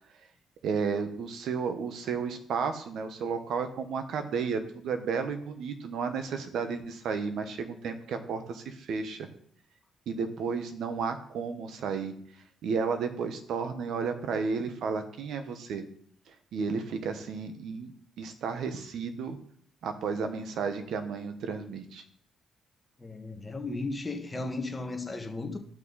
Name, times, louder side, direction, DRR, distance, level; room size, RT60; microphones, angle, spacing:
voice 1, 0.6-9.3 10.1-12.1 12.6-15.8 16.5-17.9 18.2-19.4 19.8-22.0, right 5 dB, 75° right, 1.2 m, -32 dB
voice 2, 23.0-25.6, left 3 dB, 20° left, 1.5 m, -35 dB
12.0 x 6.1 x 4.0 m
cardioid pair, 90°, 0 cm